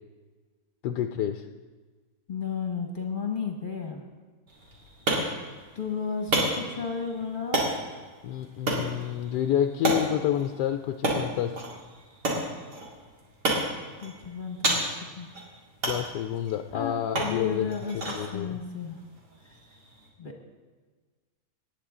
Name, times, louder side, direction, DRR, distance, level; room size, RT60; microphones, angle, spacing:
voice 1, 0.8-1.5 8.2-11.6 15.9-18.6, left 10 dB, 85° left, 7 dB, 1.2 m, -29 dB
voice 2, 2.3-4.0 5.7-7.7 14.0-14.8 15.2-15.3 16.7-19.0 20.2-20.3, left 5 dB, 35° left, 2 dB, 1.3 m, -33 dB
sound 1, 4.5-20.1, right 1 dB, 85° right, 2.8 m, -32 dB
18.5 x 9.4 x 3.7 m, 1.4 s
omnidirectional pair, 1.7 m